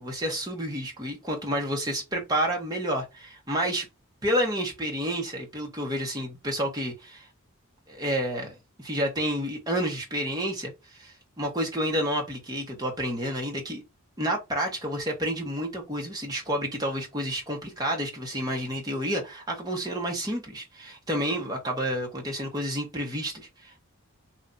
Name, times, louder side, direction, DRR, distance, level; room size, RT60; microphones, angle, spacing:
voice 1, 0.0-3.9 4.2-7.3 7.9-13.8 14.2-23.8, equal, 20° right, 1.4 m, -30 dB
3.1 x 2.8 x 3.8 m
head